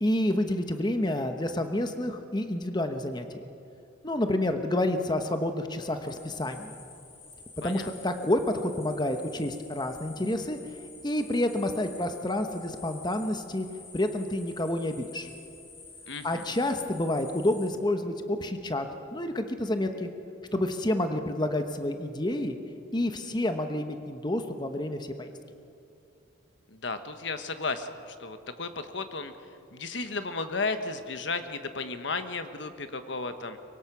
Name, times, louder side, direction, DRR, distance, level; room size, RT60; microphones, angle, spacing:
voice 1, 0.0-3.4 4.0-6.7 7.6-10.6 11.0-13.7 13.9-15.3 16.2-18.9 19.1-20.1 20.5-22.6 22.9-25.4, left 1 dB, 20° left, 7 dB, 1.0 m, -29 dB
sound 1, 6.1-17.7, left 4 dB, 85° left, 5.5 m, -49 dB
voice 2, 16.1-16.5 26.7-29.3 29.7-33.6, left 3 dB, 65° left, 9 dB, 1.3 m, -34 dB
24.0 x 22.5 x 6.1 m, 2.6 s
head